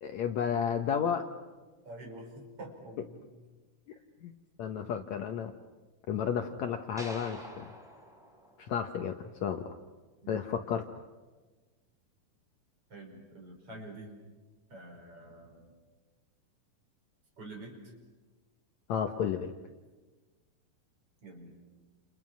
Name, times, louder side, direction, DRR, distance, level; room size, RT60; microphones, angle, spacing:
voice 1, 0.0-1.2 4.2-4.3 4.6-5.5 6.1-7.7 8.6-9.7 10.3-10.8 18.9-19.5, left 7 dB, 65° left, 6 dB, 2.0 m, -32 dB
voice 2, 1.8-3.3 3.9-4.0 10.2-10.5 12.9-14.1 14.7-15.7 17.4-17.9 21.2-21.6, right 2 dB, 40° right, 1 dB, 5.8 m, -47 dB
sound 1, 7.0-9.3, equal, ahead, 4.3 m, -47 dB
29.5 x 29.0 x 6.2 m, 1.3 s
omnidirectional pair, 4.0 m